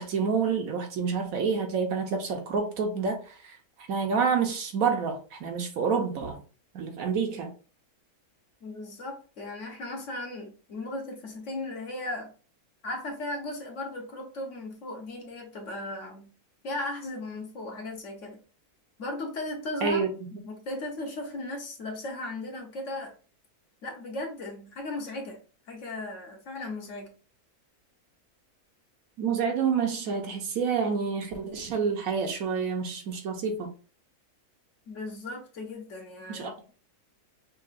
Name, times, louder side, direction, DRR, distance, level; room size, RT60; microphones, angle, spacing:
voice 1, 0.0-3.5 3.8-6.4 6.7-7.5 19.8-20.1 29.2-33.7 36.3-36.5, right 5 dB, 70° right, 1.1 m, -28 dB
voice 2, 8.6-12.3 12.8-16.3 16.6-18.4 19.0-23.1 23.8-25.4 25.7-27.1 34.9-36.7, left 2 dB, 60° left, 1.1 m, -36 dB
5.5 x 2.3 x 2.4 m
omnidirectional pair, 1.6 m